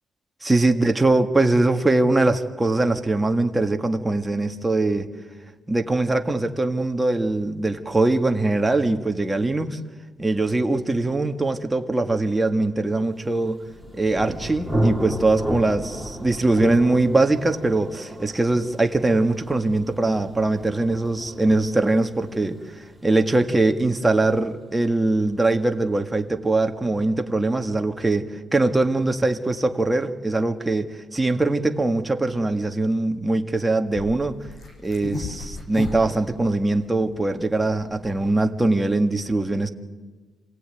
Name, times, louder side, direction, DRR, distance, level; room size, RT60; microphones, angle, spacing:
voice 1, 0.4-5.1 5.7-9.8 10.2-13.6 13.9-22.6 23.0-34.4 34.8-39.7, right 2 dB, 15° right, 5 dB, 1.8 m, -22 dB
Thunder, 13.4-24.9, right 1 dB, 5° left, 4.4 m, -33 dB
sound 1, 33.9-39.0, left 2 dB, 60° left, 7.3 m, -36 dB
27.5 x 17.5 x 9.3 m, 1.4 s
cardioid pair, 90°, 0 cm